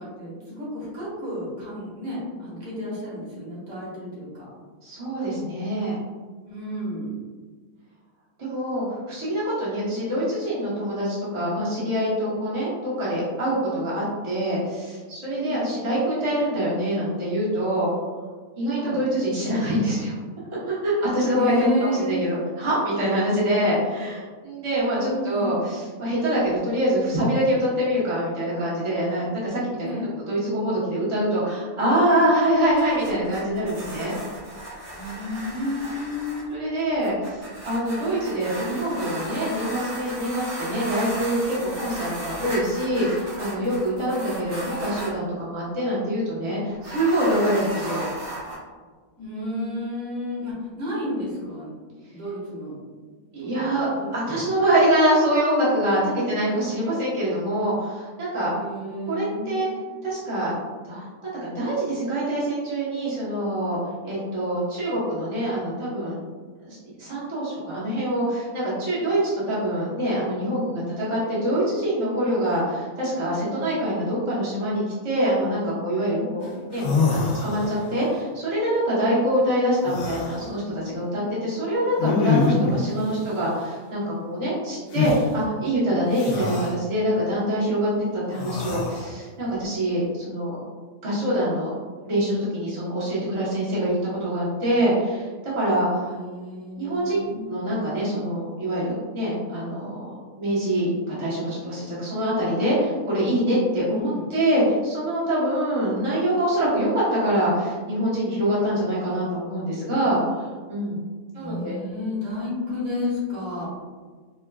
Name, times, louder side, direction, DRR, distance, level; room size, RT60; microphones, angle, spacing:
voice 1, 0.0-4.5 6.5-7.1 15.3-15.8 18.7-19.0 21.3-22.2 23.5-23.6 25.0-25.7 29.8-30.1 34.9-36.7 49.2-51.7 52.1-52.8 53.4-54.4 58.5-59.8 76.1-76.6 96.0-97.7 103.8-104.3 111.3-113.7, left 2 dB, 75° right, -7 dB, 1.7 m, -32 dB
voice 2, 4.8-6.0 8.4-17.9 18.6-20.1 20.7-29.8 30.3-34.1 36.5-48.0 53.3-58.5 59.1-59.7 60.0-60.5 60.8-63.8 64.0-66.2 66.6-76.8 77.1-90.6 91.0-91.7 92.0-96.2 96.8-97.2 97.5-100.1 100.4-111.0 111.3-111.8, right 1 dB, 25° right, -9 dB, 1.0 m, -25 dB
sound 1, 32.5-45.2 46.7-48.6, right 1 dB, 45° right, 1.2 m, -36 dB
sound 2, 76.4-76.5 76.7-78.0 79.8-80.4 82.0-82.8 84.9-85.2 86.1-86.8 88.3-89.1, left 4 dB, 90° left, 1.1 m, -24 dB
4.5 x 2.3 x 2.3 m, 1.5 s
omnidirectional pair, 1.5 m